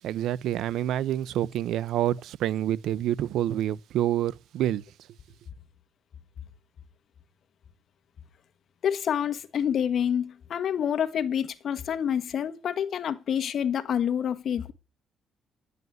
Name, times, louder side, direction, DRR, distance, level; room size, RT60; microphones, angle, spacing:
voice 1, 0.0-4.9, right 12 dB, 80° right, 0.7 m, -27 dB
voice 2, 8.8-14.7, left 8 dB, 60° left, 1.3 m, -27 dB
11.0 x 8.2 x 9.3 m
cardioid pair, 90°, 0 cm